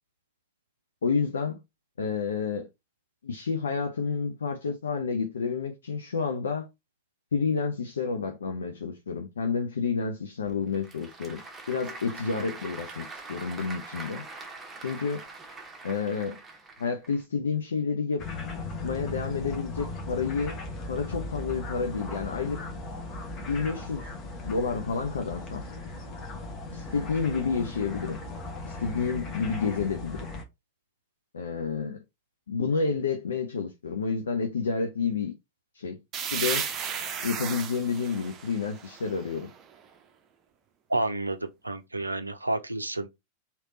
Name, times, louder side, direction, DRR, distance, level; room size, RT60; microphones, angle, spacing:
voice 1, 1.0-1.6 2.0-2.7 3.2-6.7 7.3-11.4 11.7-14.3 14.8-15.2 15.8-16.4 16.8-18.3 18.8-20.6 20.9-22.6 23.5-25.6 26.7-28.2 28.6-30.2 31.3-32.0 32.5-35.3 35.7-36.0 36.3-36.7 37.2-39.5, left 5 dB, 70° left, 0.5 m, -30 dB
Applause / Crowd, 10.5-17.2, right 3 dB, 15° right, 1.0 m, -43 dB
sound 1, 18.2-30.4, left 2 dB, 30° left, 1.1 m, -37 dB
sound 2, 36.1-39.7, right 7 dB, 30° right, 0.6 m, -34 dB
voice 2, 40.9-43.1, right 2 dB, 85° right, 0.5 m, -30 dB
3.3 x 2.9 x 3.9 m
figure-of-eight pair, 90°, 0 cm